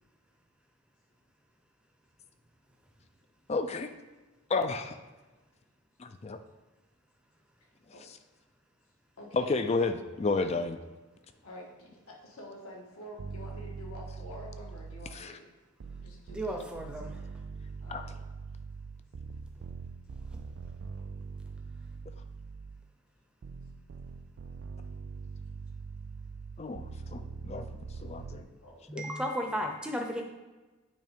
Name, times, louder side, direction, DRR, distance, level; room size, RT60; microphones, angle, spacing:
voice 1, 3.5-3.9 4.5-5.0 6.0-6.4 9.3-10.8 15.2-15.3 17.9-18.0 26.6-27.6 28.0-28.5 29.0-29.1, left 3 dB, 30° left, 9 dB, 0.4 m, -31 dB
voice 2, 9.1-9.9 11.4-15.5 16.0-16.8 17.8-18.2 28.2-28.8, left 1 dB, 75° left, -1 dB, 1.6 m, -48 dB
sound 1, 13.2-15.4 15.8-22.9 23.4-28.4, right 4 dB, 50° right, 0.4 m, -43 dB
voice 3, 16.3-17.1 28.9-30.2, equal, 5° right, 2 dB, 0.7 m, -34 dB
9.2 x 3.2 x 5.2 m, 1.2 s
head